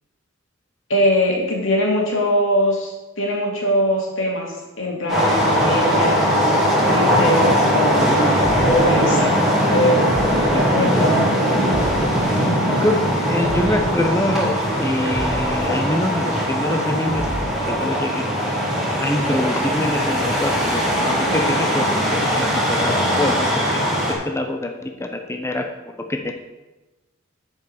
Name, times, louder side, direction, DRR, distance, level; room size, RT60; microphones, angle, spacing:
voice 1, 0.9-6.4 6.9-10.1 10.7-11.3 12.4-12.8, equal, 75° left, -1 dB, 2.5 m, -22 dB
sound 1, 5.1-24.1, equal, ahead, 2.7 m, -20 dB
sound 2, 8.3-9.0 10.0-10.6 11.6-12.3 13.4-14.0 15.0-15.7 17.0-17.7, right 1 dB, 75° right, 1.6 m, -31 dB
voice 2, 10.5-11.0 12.3-12.4 12.8-13.0 13.3-17.3 17.8-18.2 19.0-21.8 22.1-23.5 23.7-25.6 26.1-26.3, left 1 dB, 15° left, 4 dB, 0.6 m, -25 dB
7.8 x 5.4 x 6.9 m, 1.1 s
head